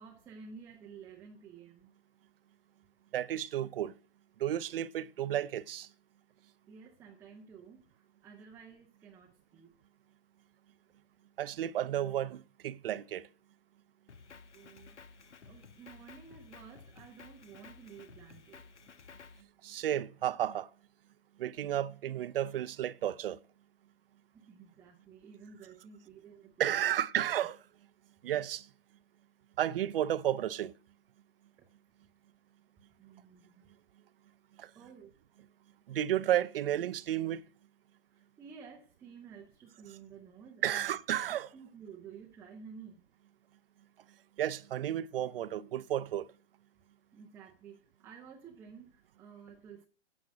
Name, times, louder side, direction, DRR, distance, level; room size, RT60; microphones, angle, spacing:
voice 1, 0.0-1.9 6.7-9.8 14.5-18.7 24.3-27.0 31.6-31.7 33.0-33.7 34.7-35.1 35.4-35.5 38.1-40.9 41.3-43.1 47.1-49.9, right 6 dB, 5° right, 0.5 m, -52 dB
voice 2, 3.1-3.9 4.4-5.9 11.4-13.3 19.6-20.7 21.4-23.4 26.6-27.6 28.2-28.7 29.6-30.7 34.6-34.7 35.9-37.4 40.6-41.5 44.4-46.3, right 11 dB, 55° right, 0.6 m, -32 dB
Drum kit, 14.1-19.4, left 5 dB, 85° left, 1.2 m, -54 dB
9.6 x 6.1 x 8.5 m
hypercardioid pair, 135°, 34 cm